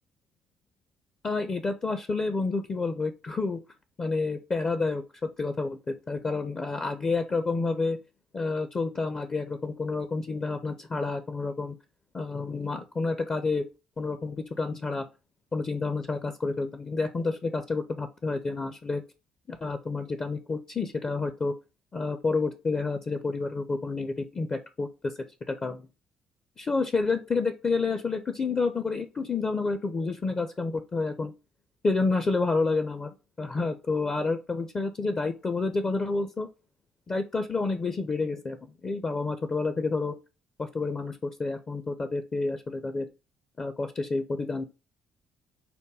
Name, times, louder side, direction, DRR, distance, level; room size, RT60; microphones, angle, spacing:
voice 1, 1.2-3.6 4.0-8.0 8.3-11.8 12.1-13.7 14.0-15.0 15.5-19.0 19.5-21.5 21.9-25.1 25.5-25.9 26.6-31.3 31.8-33.1 33.4-36.5 37.1-40.2 40.6-43.1 43.6-44.6, left 3 dB, 35° left, 9 dB, 0.6 m, -29 dB
5.0 x 2.2 x 4.6 m, 0.29 s
hypercardioid pair, 50°, 3 cm